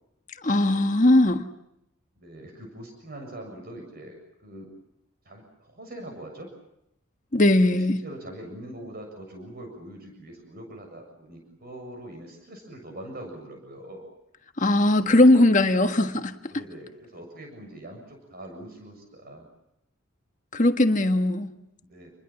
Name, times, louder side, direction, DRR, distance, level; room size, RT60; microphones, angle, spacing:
voice 1, 0.4-1.4 7.3-8.0 14.6-16.5 20.5-21.5, left 1 dB, 35° left, 6 dB, 1.5 m, -19 dB
voice 2, 2.2-4.2 4.4-4.7 5.3-6.5 7.6-14.1 16.5-19.5 21.8-22.1, right 1 dB, 45° right, 4 dB, 7.3 m, -42 dB
30.0 x 21.5 x 7.5 m, 0.81 s
head